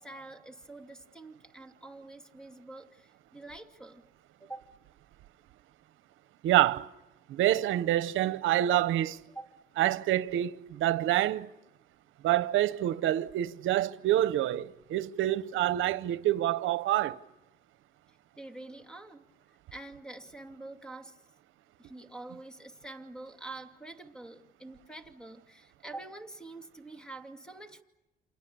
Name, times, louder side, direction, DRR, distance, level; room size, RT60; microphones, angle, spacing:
voice 1, 0.0-4.0 4.4-4.7 9.3-9.5 18.1-21.2 21.8-27.8, right 2 dB, 5° left, 2.5 m, -46 dB
voice 2, 6.4-6.9 7.3-9.2 9.8-11.5 12.2-17.2, right 13 dB, 85° right, 0.8 m, -27 dB
29.0 x 27.5 x 6.9 m
cardioid pair, 90°, 20 cm